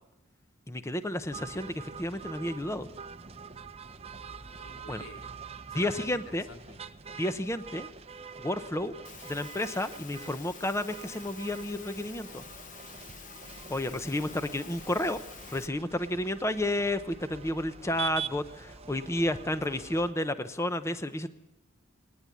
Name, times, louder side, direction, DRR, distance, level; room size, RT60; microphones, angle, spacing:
voice 1, 0.7-2.9 4.9-5.0 5.7-6.5 7.2-7.9 8.4-8.9 9.3-12.4 13.7-15.2 15.5-21.3, left 1 dB, 15° left, 10 dB, 0.7 m, -31 dB
sound 1, 1.3-20.1, right 6 dB, 30° right, 0.8 m, -45 dB
voice 2, 4.0-5.3 5.7-6.8, left 2 dB, 85° left, 4 dB, 2.4 m, -49 dB
Engine / Mechanisms, 9.0-15.7, left 6 dB, 40° left, 0.9 m, -48 dB
20.5 x 19.5 x 8.4 m, 0.92 s
head